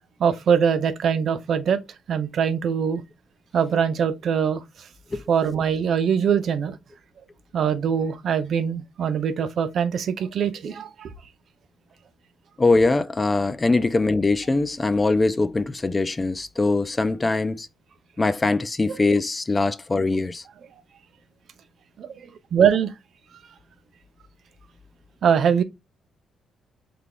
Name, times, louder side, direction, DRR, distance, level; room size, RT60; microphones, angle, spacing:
voice 1, 0.2-1.8 2.1-3.0 3.5-4.6 5.3-6.8 7.5-11.1 18.9-19.0 22.0-22.1 22.5-22.9 25.2-25.6, right 7 dB, 60° right, 0.6 m, -22 dB
voice 2, 12.6-17.7 18.2-20.4, left 3 dB, 25° left, 0.4 m, -22 dB
3.3 x 2.3 x 3.7 m
cardioid pair, 90°, 0 cm